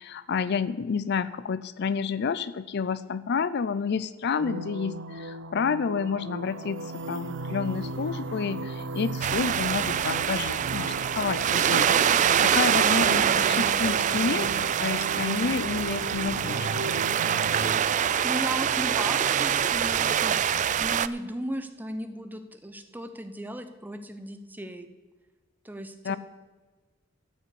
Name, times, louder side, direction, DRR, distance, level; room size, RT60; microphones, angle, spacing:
voice 1, 0.0-6.8 7.1-14.5 14.8-16.7 26.0-26.2, left 5 dB, 55° left, 16 dB, 0.4 m, -29 dB
sound 1, 4.4-17.8, right 2 dB, 60° right, 0.7 m, -36 dB
sound 2, 9.2-21.1, right 9 dB, 35° right, 0.3 m, -25 dB
voice 2, 18.2-24.9 25.6-26.2, right 1 dB, 10° right, 8 dB, 0.8 m, -36 dB
13.5 x 5.8 x 8.5 m, 1.3 s
head